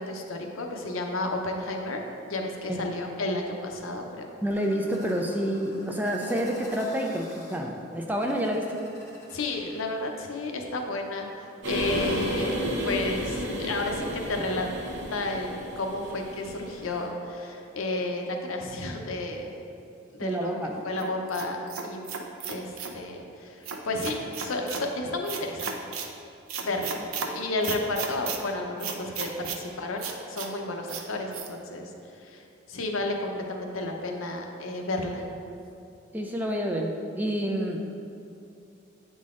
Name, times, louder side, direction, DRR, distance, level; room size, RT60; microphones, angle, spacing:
voice 1, 0.0-2.0 2.3-4.3 9.3-12.6 12.8-14.7 15.1-19.5 20.1-20.5 20.8-21.6 21.8-22.1 22.5-25.7 26.6-27.1 27.3-31.9 32.2-32.4 32.7-35.2, left 2 dB, 80° left, 2 dB, 0.7 m, -32 dB
voice 2, 4.4-8.7 20.2-20.8 36.1-37.8, equal, 10° right, 1 dB, 0.3 m, -28 dB
sound 1, 4.5-10.1, left 1 dB, 15° left, 0.8 m, -46 dB
sound 2, 11.6-17.0, equal, 60° right, 0.9 m, -32 dB
sound 3, 21.0-23.0 23.6-24.9 25.3-26.1 26.5-27.3 27.6-28.4 28.8-29.6 30.0-30.5 30.9-31.0 31.3-31.5, right 6 dB, 80° right, 0.6 m, -34 dB
8.5 x 4.0 x 3.7 m, 2.6 s
head